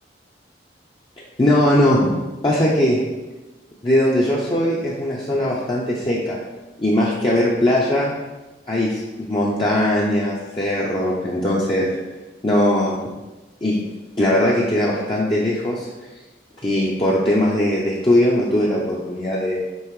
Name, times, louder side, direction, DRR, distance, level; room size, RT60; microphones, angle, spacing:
voice 1, 1.4-2.0 2.4-3.0 3.8-6.4 6.8-8.1 8.7-12.0 12.4-13.0 13.6-13.8 14.2-15.9 16.6-19.6, left 1 dB, 30° left, -6 dB, 0.7 m, -19 dB
5.5 x 3.6 x 4.7 m, 1.1 s
head